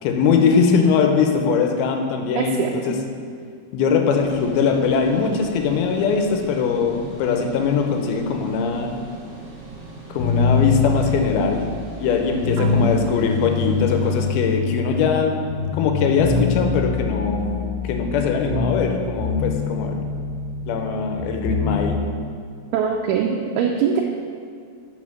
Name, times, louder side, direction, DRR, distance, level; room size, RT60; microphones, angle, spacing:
voice 1, 0.0-3.0 3.7-8.9 10.1-11.6 12.0-15.4 15.7-17.5 17.8-20.0 20.7-22.0, left 5 dB, 85° left, 4 dB, 2.6 m, -21 dB
voice 2, 2.4-2.9 12.6-13.1 22.7-24.0, right 7 dB, 85° right, 0 dB, 2.5 m, -23 dB
sound 1, 4.1-14.3, right 3 dB, 45° right, 2.3 m, -40 dB
sound 2, 10.2-12.9 13.2-15.2 15.5-18.9 19.2-21.8, left 5 dB, 60° left, 2.6 m, -24 dB
6.2 x 5.9 x 5.9 m, 2.1 s
omnidirectional pair, 4.3 m